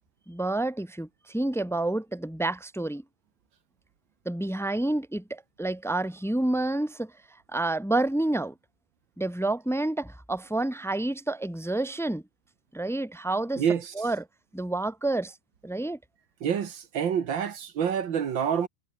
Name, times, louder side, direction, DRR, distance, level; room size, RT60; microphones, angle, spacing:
voice 1, 0.3-3.0 4.3-7.1 7.5-8.5 9.2-12.2 12.7-13.6 13.9-14.2 14.5-15.3 15.6-16.0, right 2 dB, ahead, 1.8 m, -29 dB
voice 2, 13.6-13.9 16.4-18.7, right 8 dB, 70° right, 2.2 m, -27 dB
omnidirectional pair, 2.2 m